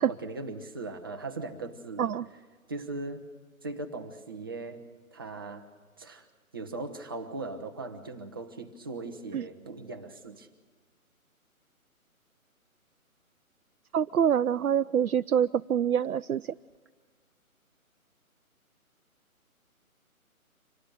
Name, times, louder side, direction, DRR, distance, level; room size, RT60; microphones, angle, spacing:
voice 1, 0.1-2.2 2.7-3.3 3.6-4.8 5.1-5.7 6.0-6.3 6.5-10.5, right 2 dB, 15° right, 5 dB, 0.7 m, -39 dB
voice 2, 13.9-16.4, right 8 dB, 80° right, 11 dB, 0.5 m, -25 dB
26.0 x 18.5 x 6.7 m, 1.4 s
figure-of-eight pair, 145°, 43 cm